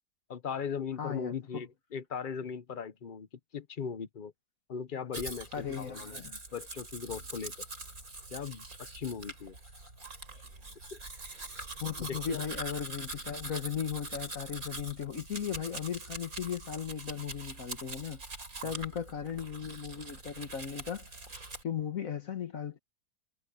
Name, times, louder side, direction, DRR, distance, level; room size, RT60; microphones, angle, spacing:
voice 1, 0.3-3.3 3.5-4.3 4.7-7.5 8.3-8.6 8.9-9.6 10.9-11.0 12.0-12.4 18.6-18.7, left 6 dB, 45° left, 0.8 m, -38 dB
voice 2, 1.0-1.6 5.5-6.4 10.3-10.5 11.8-18.2 18.6-21.2 21.6-22.8, left 8 dB, 60° left, 1.7 m, -37 dB
Domestic sounds home sounds, 5.1-21.6, right 2 dB, 60° right, 5.0 m, -43 dB
omnidirectional pair, 1.7 m